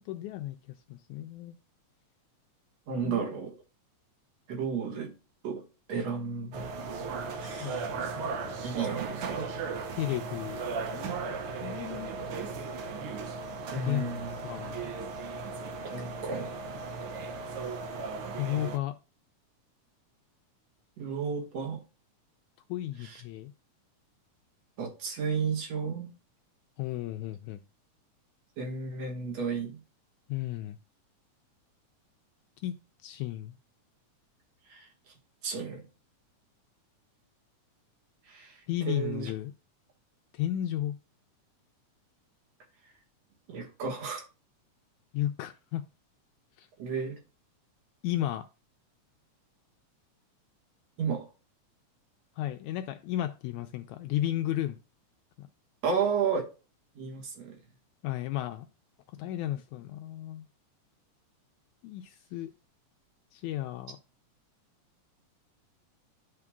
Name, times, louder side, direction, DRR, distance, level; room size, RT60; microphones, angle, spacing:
voice 1, 0.1-0.6 0.9-1.6 3.1-3.2 7.6-8.1 9.9-10.6 10.9-11.1 11.6-12.3 13.7-14.1 14.4-14.9 18.4-18.9 22.7-23.5 26.8-27.6 30.3-30.8 32.6-32.7 33.0-33.5 38.7-39.5 40.3-41.0 45.1-45.8 46.6-46.7 48.0-48.4 52.4-54.8 55.4-55.5 58.0-58.7 59.2-60.5 61.8-62.5 63.3-64.0, left 13 dB, 80° left, 1.9 m, -33 dB
voice 2, 2.9-3.6 4.5-5.1 5.4-5.6 5.9-6.7 7.4-7.9 8.6-9.4 13.7-14.4 15.8-16.7 21.0-21.8 23.0-23.2 24.8-26.1 28.6-29.8 34.7-34.9 35.4-35.8 38.3-39.3 43.5-44.2 46.8-47.2 51.0-51.3 55.8-56.4 57.0-57.6, right 6 dB, 60° right, 2.5 m, -33 dB
sound 1, 6.5-18.8, right 4 dB, 90° right, 1.2 m, -36 dB
12.0 x 4.8 x 2.2 m
omnidirectional pair, 3.5 m